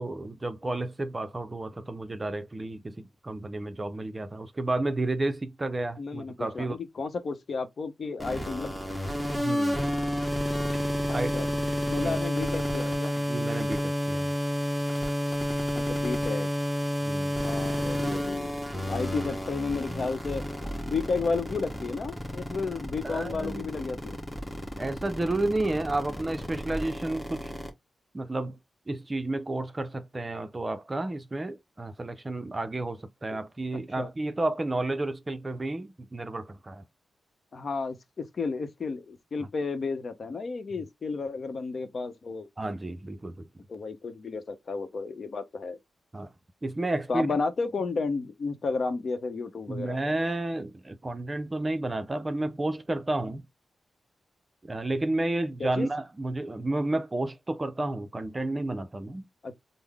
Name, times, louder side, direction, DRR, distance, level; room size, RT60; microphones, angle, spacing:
voice 1, 0.0-6.8 9.4-9.8 11.1-11.4 12.0-12.2 13.3-14.3 17.0-17.4 23.0-23.7 24.8-27.5 28.1-28.6 28.9-36.8 42.6-43.5 46.1-46.3 46.6-47.3 49.7-53.4 54.6-59.2, right 2 dB, 25° right, 0.5 m, -31 dB
voice 2, 6.0-8.8 11.3-11.5 11.9-13.1 15.7-16.5 17.4-18.5 18.9-20.4 20.8-24.2 34.0-34.1 37.5-42.5 43.7-45.8 47.1-50.0 55.6-55.9 59.4-59.5, left 4 dB, 55° left, 0.7 m, -32 dB
sound 1, 8.2-27.7, equal, 10° left, 1.2 m, -30 dB
3.6 x 2.0 x 3.4 m
cardioid pair, 85°, 0 cm